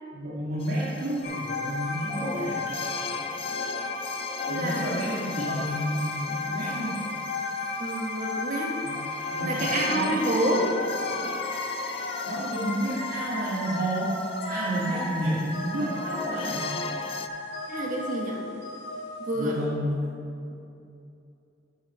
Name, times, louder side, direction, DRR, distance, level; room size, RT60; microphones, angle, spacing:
voice 1, 0.1-2.6 4.5-7.0 8.8-9.0 9.3-10.6 12.3-14.1 14.5-16.8 19.3-20.0, right 1 dB, 70° right, -9 dB, 2.0 m, -31 dB
sound 1, 0.6-17.3, left 5 dB, 30° left, 0.3 m, -40 dB
sound 2, 1.2-19.6, left 2 dB, 65° left, 2.0 m, -34 dB
voice 2, 4.5-5.0 7.8-8.7 9.4-10.7 17.7-18.4 19.2-19.5, right 1 dB, 45° right, -2 dB, 1.5 m, -28 dB
11.0 x 7.0 x 4.2 m, 2.6 s
head